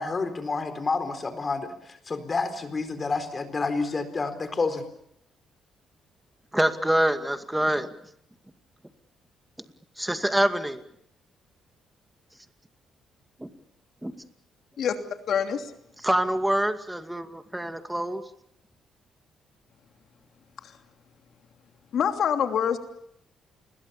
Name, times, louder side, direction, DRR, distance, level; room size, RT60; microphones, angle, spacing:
voice 1, 0.0-4.8, left 4 dB, 35° left, 10 dB, 4.2 m, -29 dB
voice 2, 6.5-7.9 10.0-10.8 13.4-13.5 14.0-14.1 16.0-18.2, right 1 dB, 5° right, 8 dB, 2.3 m, -25 dB
voice 3, 15.3-15.7 20.6-20.7 21.9-22.8, left 8 dB, 65° left, 6 dB, 3.0 m, -25 dB
28.5 x 21.5 x 7.2 m, 0.73 s
cardioid pair, 90°, 0 cm